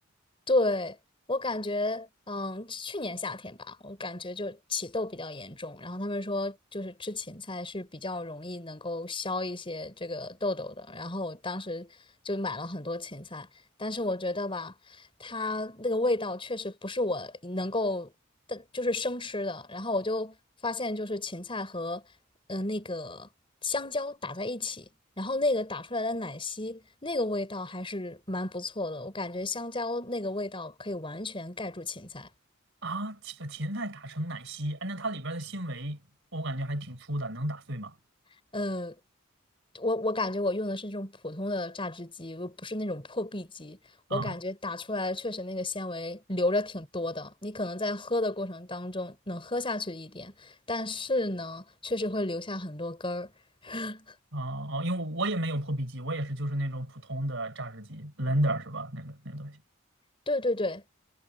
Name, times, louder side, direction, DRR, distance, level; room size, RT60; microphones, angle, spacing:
voice 1, 0.5-1.0 1.3-11.9 12.2-13.5 13.8-18.1 18.5-20.4 20.6-22.0 22.5-23.3 23.6-24.9 25.2-32.3 38.5-39.0 39.7-43.8 44.1-53.3 53.6-54.1 60.3-60.8, left 2 dB, 25° left, 4.3 m, -32 dB
voice 2, 32.8-36.0 36.3-37.9 44.1-44.3 54.3-59.6, right 1 dB, 65° right, 4.6 m, -32 dB
head